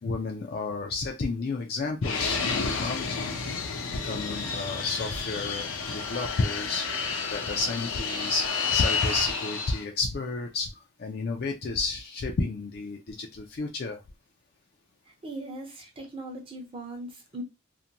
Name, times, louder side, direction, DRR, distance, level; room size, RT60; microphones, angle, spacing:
voice 1, 0.0-3.3 4.0-10.7 11.0-14.0, left 3 dB, 45° left, 0.3 m, -31 dB
Fixed-wing aircraft airplane, 2.0-9.8, left 5 dB, 85° left, 0.6 m, -30 dB
voice 2, 15.1-17.4, right 2 dB, 25° right, 0.7 m, -39 dB
2.5 x 2.1 x 2.8 m
head